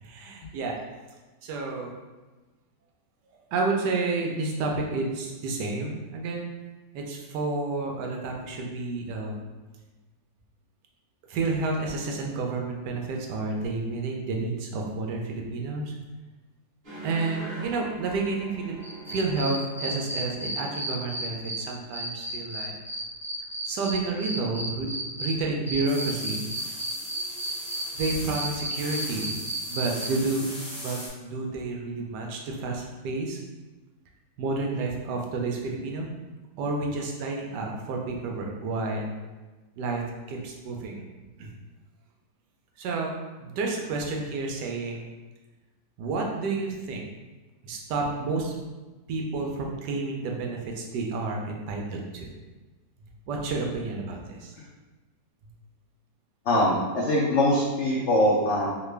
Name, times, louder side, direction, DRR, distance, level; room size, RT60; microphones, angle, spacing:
voice 1, 0.0-0.7 1.4-1.9 3.5-6.5 6.9-9.4 11.3-15.9 17.0-18.8 19.1-22.8 23.7-24.9 25.2-26.4 27.9-29.4 29.7-30.4 30.8-33.4 34.4-36.1 36.6-39.1 39.8-40.0 40.3-41.0 41.4-41.5 42.8-43.1 43.4-45.0 46.0-47.1 47.6-48.6 49.1-52.3 53.3-54.5, right 3 dB, 80° right, 0 dB, 1.2 m, -30 dB
sound 1, 16.8-21.8, right 3 dB, 35° right, 1.2 m, -43 dB
sound 2, 18.8-21.6 21.9-25.3 25.7-30.1, right 1 dB, 5° left, 0.4 m, -33 dB
sound 3, 25.9-31.1, left 1 dB, 30° left, 0.8 m, -40 dB
voice 2, 56.5-58.7, left 1 dB, 80° left, -5 dB, 0.6 m, -22 dB
3.2 x 2.2 x 3.2 m, 1.2 s
omnidirectional pair, 1.8 m